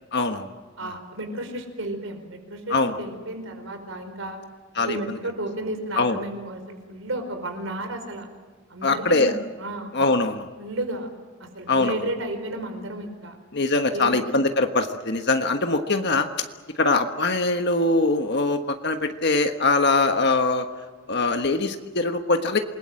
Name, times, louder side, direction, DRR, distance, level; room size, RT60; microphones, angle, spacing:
voice 1, 0.1-0.5 2.7-2.9 4.8-5.0 6.0-6.2 8.8-9.3 9.9-10.5 11.7-12.0 13.5-16.5 16.8-20.7 21.1-22.6, left 3 dB, 55° left, 6 dB, 1.4 m, -22 dB
voice 2, 0.8-4.4 4.8-8.3 8.7-9.9 10.6-11.1 11.4-13.4 13.9-14.4, right 1 dB, 75° right, 6 dB, 5.1 m, -33 dB
28.0 x 21.0 x 7.8 m, 1.4 s
head